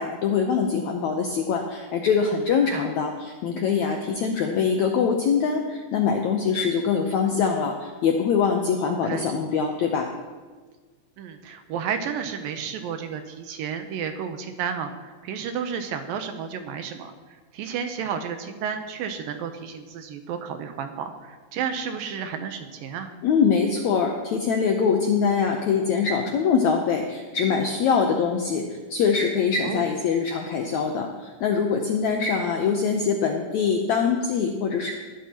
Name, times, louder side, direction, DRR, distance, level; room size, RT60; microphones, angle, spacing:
voice 1, 0.0-10.1 23.2-28.6 28.9-34.9, left 6 dB, 80° left, 2 dB, 1.6 m, -23 dB
voice 2, 8.9-9.3 11.2-23.1 29.6-29.8, right 7 dB, 75° right, 7 dB, 2.4 m, -32 dB
19.5 x 12.0 x 3.0 m, 1.4 s
omnidirectional pair, 4.4 m